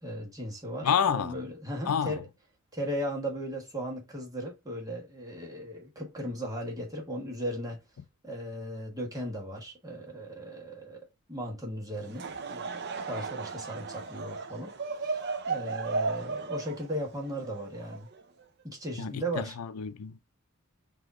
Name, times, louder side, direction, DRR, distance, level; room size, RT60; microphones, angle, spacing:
voice 1, 0.0-2.2 2.7-7.8 8.2-11.0 11.3-12.8 13.1-14.7 15.0-15.2 15.5-18.1 18.6-19.5, equal, 15° right, 1.4 m, -37 dB
voice 2, 0.8-1.4 1.9-2.2 19.0-20.3, left 7 dB, 85° left, 0.5 m, -29 dB
Laughter / Crowd, 12.0-18.4, right 4 dB, 50° right, 0.7 m, -35 dB
4.9 x 2.8 x 3.7 m
head